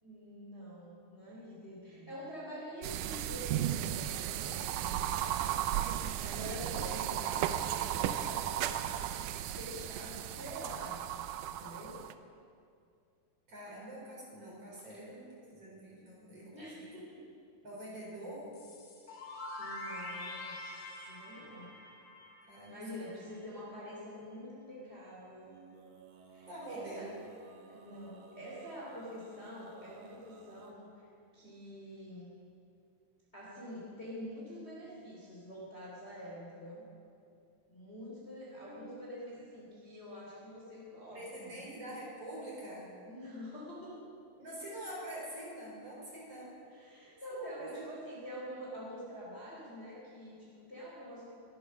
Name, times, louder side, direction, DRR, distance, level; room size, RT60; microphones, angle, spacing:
voice 1, 0.0-5.8 6.2-9.1 9.4-12.1 16.5-17.2 19.6-20.6 21.0-21.7 22.7-25.6 26.3-27.1 27.7-31.1 31.3-32.3 33.3-36.9 37.7-41.6 43.0-44.0 46.7-51.3, equal, 20° left, -5 dB, 3.0 m, -46 dB
sound 1, 2.8-12.1, right 11 dB, 80° right, 1.9 m, -35 dB
voice 2, 13.5-16.9 17.6-18.6 22.4-23.1 26.5-27.2 38.6-39.0 39.5-39.6 41.1-42.9 44.4-46.6 47.3-47.8, right 1 dB, 45° right, -5 dB, 5.5 m, -46 dB
sound 2, 18.5-23.3, left 1 dB, 80° left, 3.8 m, -45 dB
Male singing, 25.4-30.7, right 4 dB, 60° right, 1.9 m, -58 dB
22.5 x 9.8 x 6.2 m, 2.4 s
omnidirectional pair, 4.0 m